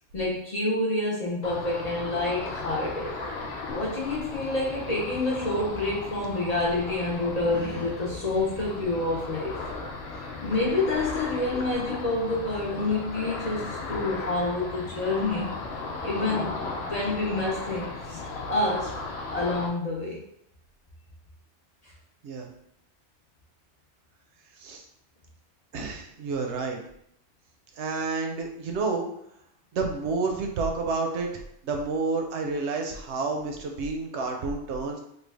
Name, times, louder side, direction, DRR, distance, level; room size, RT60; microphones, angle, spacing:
voice 1, 0.1-3.2 3.7-9.6 10.4-15.6 16.0-18.9 19.3-20.2 21.8-21.9, left 2 dB, 40° left, -4 dB, 0.6 m, -28 dB
Ocean, 1.4-19.7, left 3 dB, 70° left, 0.8 m, -36 dB
voice 2, 25.7-26.8 27.8-29.1 29.7-31.3 31.6-35.0, right 4 dB, 75° right, 3 dB, 0.9 m, -29 dB
3.2 x 2.2 x 3.3 m, 0.72 s
omnidirectional pair, 1.2 m